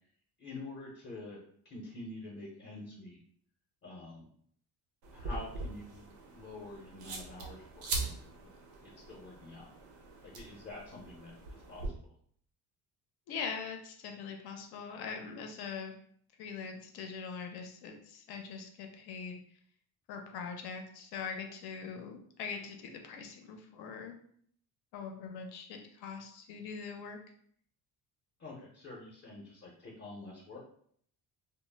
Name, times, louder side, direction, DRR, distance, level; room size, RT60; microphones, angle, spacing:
voice 1, 0.4-3.2 3.8-4.3 5.1-8.5 8.8-9.7 10.2-12.0 28.4-30.6, left 2 dB, 35° left, -2 dB, 0.6 m, -47 dB
sound 1, 5.0-11.9, right 3 dB, 90° right, 0.7 m, -42 dB
voice 2, 13.3-15.9 16.4-19.4 20.1-24.2 24.9-27.2, left 5 dB, 75° left, 4 dB, 0.6 m, -42 dB
2.0 x 2.0 x 3.2 m, 0.63 s
cardioid pair, 115°, 39 cm